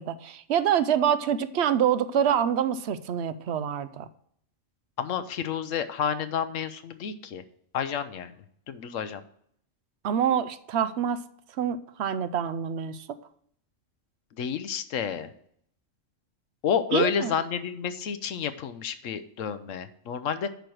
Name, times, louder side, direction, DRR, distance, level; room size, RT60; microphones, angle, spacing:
voice 1, 0.0-4.1 10.0-11.2 11.6-13.1 16.9-17.3, right 9 dB, 65° right, 14 dB, 0.8 m, -26 dB
voice 2, 5.0-7.4 7.7-8.3 8.7-9.2 14.4-15.3 16.6-20.5, left 8 dB, 80° left, 11 dB, 1.1 m, -30 dB
10.5 x 4.5 x 6.3 m, 0.66 s
omnidirectional pair, 1.3 m